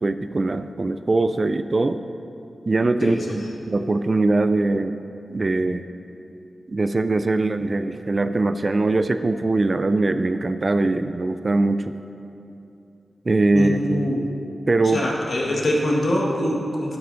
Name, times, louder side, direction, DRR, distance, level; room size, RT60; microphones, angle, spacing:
voice 1, 0.0-2.0 2.7-5.0 5.3-5.8 6.7-11.9 13.3-14.1 14.7-15.1, right 2 dB, 45° right, 10 dB, 0.3 m, -22 dB
voice 2, 13.5-14.2 14.9-17.0, left 1 dB, 60° left, -2 dB, 1.4 m, -23 dB
11.0 x 7.9 x 2.6 m, 2.8 s
cardioid pair, 50°, 0 cm